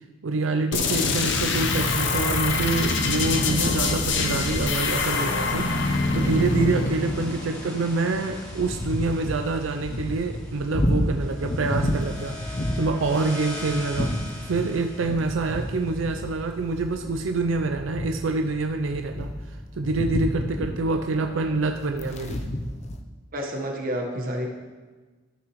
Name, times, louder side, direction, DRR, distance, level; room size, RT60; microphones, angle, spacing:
voice 1, 0.2-19.3 19.8-22.4, right 3 dB, 90° right, 6 dB, 0.5 m, -26 dB
sound 1, 0.7-8.3, left 3 dB, 65° left, 0.8 m, -25 dB
sound 2, 2.6-16.8, left 1 dB, 20° left, 2.2 m, -42 dB
sound 3, 8.1-23.0, left 1 dB, 35° left, 0.7 m, -31 dB
voice 2, 23.3-24.5, equal, 50° right, 1 dB, 1.3 m, -29 dB
14.5 x 6.2 x 3.1 m, 1.3 s
head